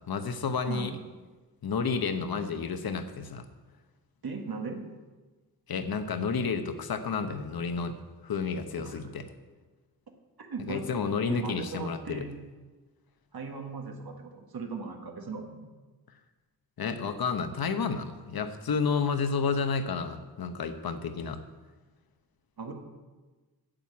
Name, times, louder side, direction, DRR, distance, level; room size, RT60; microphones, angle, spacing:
voice 1, 0.1-0.9 1.6-3.5 5.7-8.0 8.2-9.2 10.7-12.2 16.8-21.4, left 5 dB, 70° left, 9 dB, 1.0 m, -31 dB
voice 2, 4.2-4.8 8.8-9.0 10.4-12.3 13.3-15.6 22.6-22.7, right 4 dB, 75° right, 3 dB, 1.7 m, -38 dB
8.9 x 7.7 x 8.6 m, 1.3 s
wide cardioid pair, 120°, 38 cm